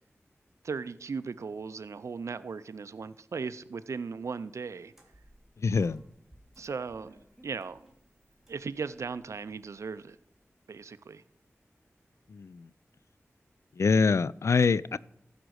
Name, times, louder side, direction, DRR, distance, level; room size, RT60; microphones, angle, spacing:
voice 1, 0.6-4.9 6.6-7.2 7.4-7.8 8.5-10.2 10.7-11.2, right 5 dB, 75° right, 0.4 m, -37 dB
sound 1, 4.9-10.1, right 1 dB, 5° right, 2.5 m, -59 dB
voice 2, 5.6-6.0 12.3-12.7 13.7-15.0, left 4 dB, 70° left, 0.3 m, -25 dB
14.5 x 5.2 x 6.3 m
wide cardioid pair, 60°, 5 cm